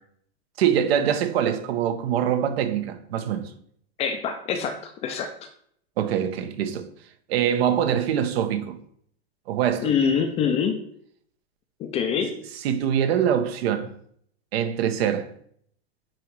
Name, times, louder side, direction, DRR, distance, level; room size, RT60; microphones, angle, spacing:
voice 1, 0.6-3.5 6.0-6.9 7.3-8.8 9.5-9.9 12.6-13.9 14.5-15.3, right 9 dB, 70° right, 1.1 m, -24 dB
voice 2, 4.0-5.3 9.8-10.8 11.8-12.3, left 7 dB, 20° left, 0.5 m, -25 dB
9.2 x 3.1 x 4.7 m
supercardioid pair, 150°, 32 cm